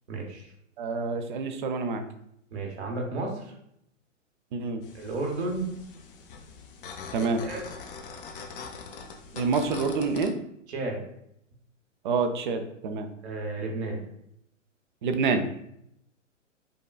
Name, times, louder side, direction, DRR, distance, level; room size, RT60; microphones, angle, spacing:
voice 1, 0.1-0.5 2.5-3.5 4.9-5.7 7.1-7.7 10.7-11.0 13.2-14.0, right 2 dB, 55° right, 1 dB, 1.0 m, -33 dB
voice 2, 0.8-2.0 4.5-4.8 7.1-7.4 9.3-10.4 12.0-13.1 15.0-15.4, right 4 dB, 40° right, 7 dB, 0.4 m, -27 dB
sound 1, 4.8-10.3, left 5 dB, 45° left, 0.5 m, -43 dB
5.2 x 2.2 x 2.3 m, 0.75 s
figure-of-eight pair, 115°, 38 cm